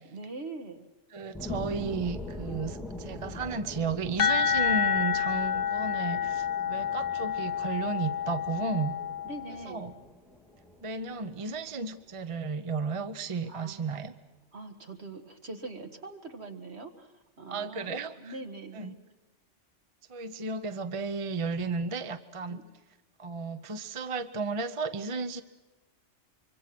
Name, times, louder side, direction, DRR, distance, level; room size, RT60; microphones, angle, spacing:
voice 1, 0.1-0.9 9.3-9.9 13.5-14.1 14.5-19.0 22.5-22.6, right 3 dB, 60° right, 5 dB, 2.2 m, -43 dB
voice 2, 1.1-8.9 9.6-9.9 10.8-14.1 17.5-18.4 18.7-18.9 20.1-22.6 23.2-25.4, right 4 dB, 30° right, 10 dB, 0.8 m, -33 dB
sound 1, 1.3-12.3 12.8-12.9, left 1 dB, ahead, 3.2 m, -43 dB
sound 2, 4.2-9.8, left 7 dB, 85° left, 1.5 m, -29 dB
25.0 x 24.0 x 6.0 m, 1.2 s
omnidirectional pair, 1.3 m